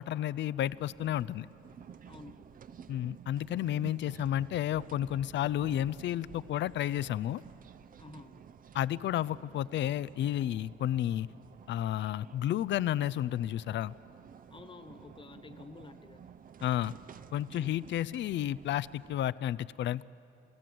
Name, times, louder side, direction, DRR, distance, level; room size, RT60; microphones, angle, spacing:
voice 1, 0.0-1.5 2.9-7.4 8.7-11.3 11.7-13.9 16.6-16.9 17.3-20.0, left 12 dB, 65° left, 19 dB, 0.5 m, -31 dB
sound 1, 0.6-19.3, right 7 dB, 45° right, 0.7 m, -52 dB
voice 2, 2.0-2.5 8.0-8.4 14.5-16.3 17.5-17.8, left 3 dB, 25° left, 9 dB, 1.5 m, -50 dB
29.0 x 16.5 x 7.8 m, 2.7 s
cardioid pair, 90°, 20 cm